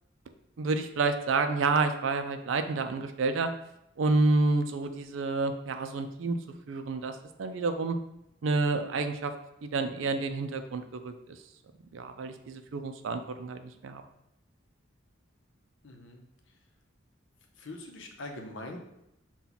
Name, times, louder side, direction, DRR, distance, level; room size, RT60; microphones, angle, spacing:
voice 1, 0.6-3.5 4.0-6.4 6.7-8.0 8.4-9.3 9.6-11.1 11.9-14.0, right 3 dB, 75° right, 8 dB, 0.4 m, -29 dB
voice 2, 15.8-16.2 17.6-18.8, left 2 dB, 70° left, 3 dB, 0.7 m, -42 dB
5.7 x 2.3 x 3.9 m, 0.83 s
head